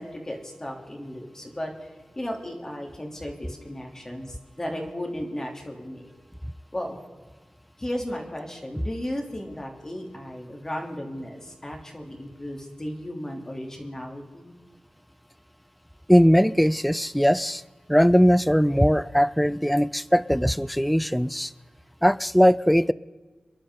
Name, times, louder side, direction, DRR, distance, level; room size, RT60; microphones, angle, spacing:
voice 1, 0.0-6.1 6.7-7.0 7.8-14.5, equal, 20° left, 1 dB, 2.9 m, -35 dB
voice 2, 16.1-17.6 17.9-21.5 22.0-22.9, equal, ahead, 18 dB, 0.4 m, -20 dB
28.0 x 11.0 x 3.8 m, 1.3 s
wide cardioid pair, 110°, 3 cm